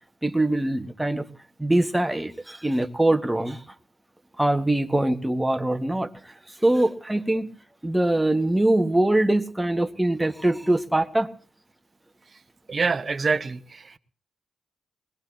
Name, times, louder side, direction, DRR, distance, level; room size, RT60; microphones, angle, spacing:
voice 1, 0.2-1.3 1.6-3.6 4.4-6.1 6.6-7.5 7.8-11.3, right 1 dB, 10° right, 1.8 m, -23 dB
voice 2, 12.7-13.8, right 4 dB, 45° right, 1.1 m, -25 dB
21.0 x 19.5 x 2.9 m
hypercardioid pair, 40°, 0 cm